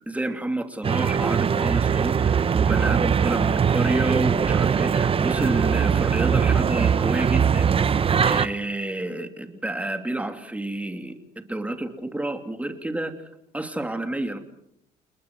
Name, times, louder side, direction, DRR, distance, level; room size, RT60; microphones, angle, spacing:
voice 1, 0.1-7.7 8.2-13.1 13.5-14.4, right 1 dB, 10° right, 7 dB, 2.9 m, -29 dB
sound 1, 0.8-8.5, right 7 dB, 35° right, 0.9 m, -21 dB
29.5 x 20.5 x 6.4 m, 0.74 s
cardioid pair, 110°, 17 cm